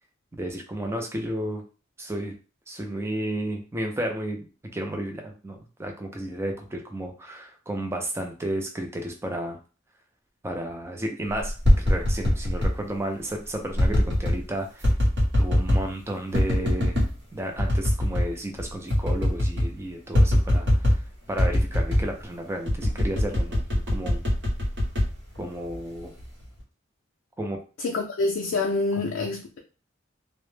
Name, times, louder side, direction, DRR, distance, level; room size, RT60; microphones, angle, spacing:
voice 1, 0.3-1.6 2.0-2.3 2.7-4.4 4.7-9.6 10.4-14.9 15.4-17.0 17.3-20.7 21.3-23.6 23.9-24.2 25.4-26.1 27.4-27.6 28.9-29.0, right 1 dB, 15° right, 0.4 m, -32 dB
tapping on glass, 11.4-12.8 13.8-14.4 14.8-15.9 16.3-17.1 17.6-18.3 18.6-18.7 18.9-19.7 20.1-21.1 21.4-22.1 22.7-25.8 26.2-26.6, left 1 dB, 60° right, 0.9 m, -22 dB
voice 2, 27.8-29.6, left 3 dB, 80° left, 0.4 m, -26 dB
2.0 x 2.0 x 3.1 m
head